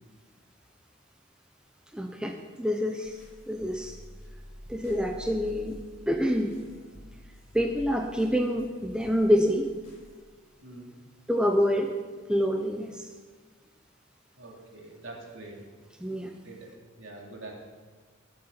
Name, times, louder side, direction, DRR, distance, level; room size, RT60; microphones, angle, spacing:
voice 1, 1.9-4.0 4.7-5.8 6.1-6.6 7.5-9.7 11.3-11.9 12.3-13.1 16.0-16.3, equal, 5° right, 3 dB, 0.7 m, -27 dB
sound 1, 3.0-10.2, equal, 30° left, 5.0 m, -49 dB
voice 2, 10.6-10.9 14.3-15.6 16.4-17.5, right 2 dB, 70° right, -1 dB, 2.8 m, -45 dB
13.0 x 7.8 x 7.3 m, 1.5 s
head